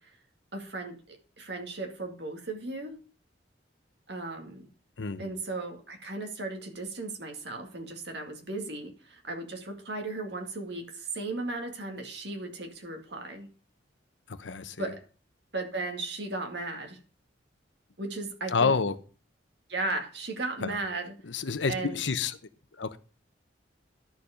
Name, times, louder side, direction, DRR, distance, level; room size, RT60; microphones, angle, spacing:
voice 1, 0.5-3.0 4.1-4.7 5.2-13.5 14.8-15.0 15.5-17.0 18.0-18.7 19.7-21.1 21.7-22.0, right 2 dB, 60° right, 2.1 m, -36 dB
voice 2, 5.0-5.3 14.3-14.9 18.5-19.0 20.6-20.8 21.2-22.4 22.8-23.0, left 4 dB, 75° left, 0.8 m, -29 dB
12.0 x 4.7 x 4.9 m
head